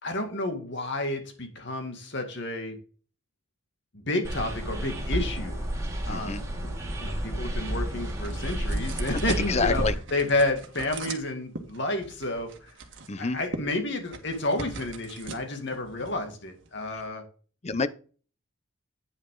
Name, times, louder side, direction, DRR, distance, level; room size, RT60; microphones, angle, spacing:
voice 1, 0.0-2.8 3.9-5.6 6.0-6.7 7.0-9.8 10.1-12.5 13.2-17.2, left 2 dB, 55° left, 2.2 m, -30 dB
sound 1, 4.2-9.9, right 1 dB, 15° right, 2.5 m, -31 dB
voice 2, 6.1-6.4 9.3-9.9 13.1-13.4 16.9-17.0 17.6-17.9, left 4 dB, 30° left, 0.6 m, -28 dB
peeling wood, 7.4-17.1, right 3 dB, 55° right, 1.7 m, -42 dB
9.7 x 6.3 x 3.8 m
head